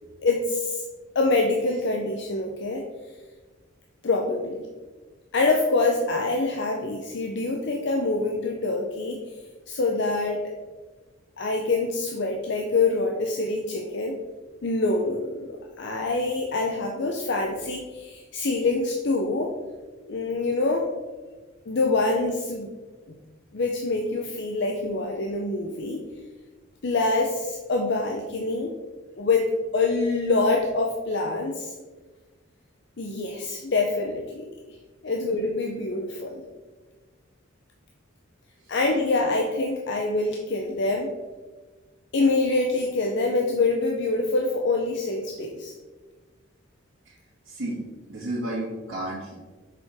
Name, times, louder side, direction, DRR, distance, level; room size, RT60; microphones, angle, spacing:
voice 1, 0.2-0.8 1.1-2.8 4.0-4.7 5.3-9.2 9.7-10.5 11.4-14.2 14.6-19.6 20.1-20.9 21.7-22.7 23.5-26.0 26.8-28.7 29.2-31.7 33.0-34.5 35.0-36.4 38.7-41.1 42.1-45.7, left 3 dB, 60° left, 1 dB, 0.6 m, -25 dB
voice 2, 47.4-47.8 48.1-49.3, right 1 dB, 90° right, -9 dB, 1.8 m, -32 dB
6.8 x 4.8 x 3.5 m, 1.3 s
head